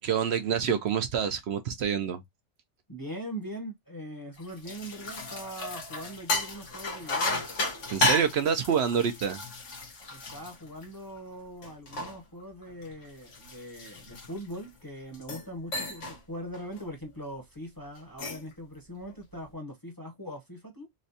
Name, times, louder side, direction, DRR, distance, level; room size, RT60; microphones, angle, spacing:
voice 1, 0.0-2.2 7.9-9.4, right 7 dB, 65° right, 0.8 m, -27 dB
voice 2, 2.9-7.4 10.1-20.9, equal, 20° left, 0.7 m, -41 dB
sound 1, 4.4-11.2 11.6-14.6 15.1-15.5 15.7-16.2 16.5-16.8 18.0-18.5, left 2 dB, 85° left, 1.5 m, -33 dB
4.1 x 2.2 x 2.6 m
omnidirectional pair, 1.2 m